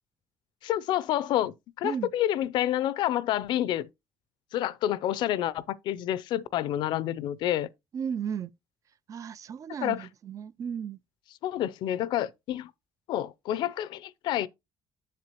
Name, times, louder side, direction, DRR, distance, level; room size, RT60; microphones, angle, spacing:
voice 1, 0.6-3.9 4.5-7.7 9.8-10.1 11.4-12.7 13.1-14.5, left 12 dB, 80° left, 0.5 m, -28 dB
voice 2, 7.9-8.5 9.1-11.0, right 7 dB, 45° right, 0.3 m, -34 dB
7.5 x 6.8 x 2.9 m
cardioid pair, 105°, 8 cm